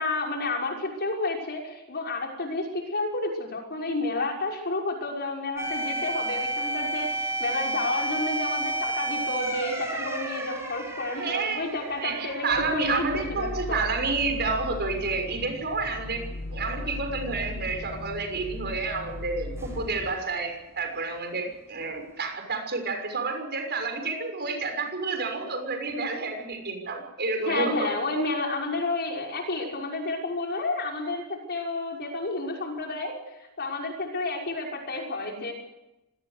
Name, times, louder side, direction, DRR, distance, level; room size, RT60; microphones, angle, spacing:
voice 1, 0.0-13.0 13.4-13.8 27.5-33.1 33.6-35.5, left 2 dB, 50° left, 1 dB, 5.9 m, -30 dB
sound 1, 5.6-14.2 14.6-14.7 19.6-20.1, right 1 dB, 10° right, 6.4 m, -32 dB
voice 2, 11.1-16.2 16.5-27.9, right 3 dB, 50° right, 5 dB, 6.5 m, -30 dB
sound 2, 12.5-20.2, left 2 dB, 75° left, 1.6 m, -38 dB
25.5 x 19.5 x 6.7 m, 0.92 s
head